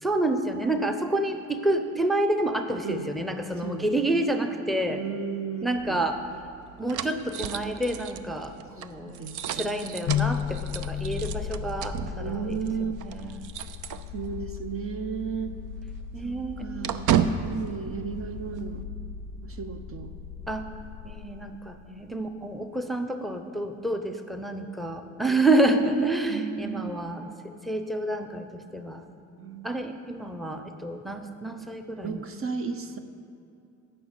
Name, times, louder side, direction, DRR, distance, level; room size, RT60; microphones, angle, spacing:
voice 1, 0.0-5.0 5.6-6.2 6.8-9.2 9.5-13.5 16.1-16.7 20.5-20.7 21.0-29.1 29.6-32.2, right 1 dB, ahead, 6 dB, 0.7 m, -28 dB
voice 2, 4.9-6.0 8.8-10.2 12.1-12.9 14.1-15.6 16.2-18.8 19.4-20.1 26.3-27.0 29.4-29.7 32.0-33.0, right 6 dB, 45° right, 8 dB, 0.8 m, -34 dB
sound 1, 5.7-14.6 14.9-15.0 15.4-18.8, right 8 dB, 85° right, 0.5 m, -33 dB
sound 2, 10.1-22.1, left 9 dB, 60° left, 0.5 m, -36 dB
11.5 x 5.9 x 8.1 m, 2.6 s
cardioid pair, 90°, 30 cm